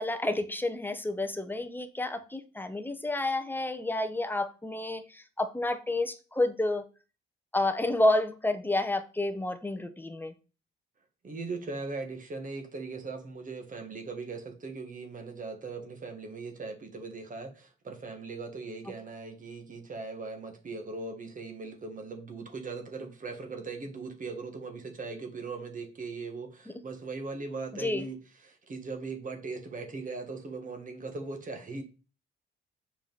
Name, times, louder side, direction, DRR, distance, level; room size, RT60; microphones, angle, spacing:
voice 1, 0.0-6.8 7.5-10.3 26.7-26.8 27.7-28.1, left 2 dB, 10° left, 0.9 m, -30 dB
voice 2, 11.2-31.8, right 3 dB, 40° right, 1.7 m, -39 dB
7.3 x 4.9 x 4.0 m
cardioid pair, 90°, 20 cm